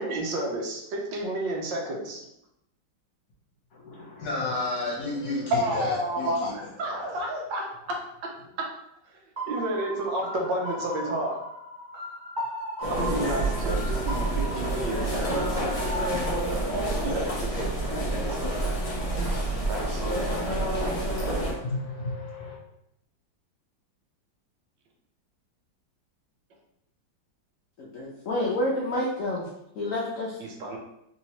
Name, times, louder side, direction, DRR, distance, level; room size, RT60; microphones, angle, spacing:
voice 1, 0.0-2.2 5.5-8.3 8.6-8.7 9.5-11.4 12.9-15.6 17.0-18.7 19.1-19.4 19.7-20.5 30.4-30.8, right 1 dB, 80° right, 1 dB, 1.4 m, -31 dB
voice 2, 3.7-7.1 21.1-22.6, left 2 dB, 60° left, -3 dB, 1.3 m, -33 dB
sound 1, 9.4-16.2, equal, 35° right, 0.8 m, -37 dB
sound 2, 12.8-21.5, right 1 dB, 45° left, 0.4 m, -28 dB
voice 3, 27.8-29.5 29.7-30.4, left 1 dB, 75° left, -3 dB, 0.7 m, -29 dB
3.5 x 2.9 x 2.8 m, 0.80 s
omnidirectional pair, 2.1 m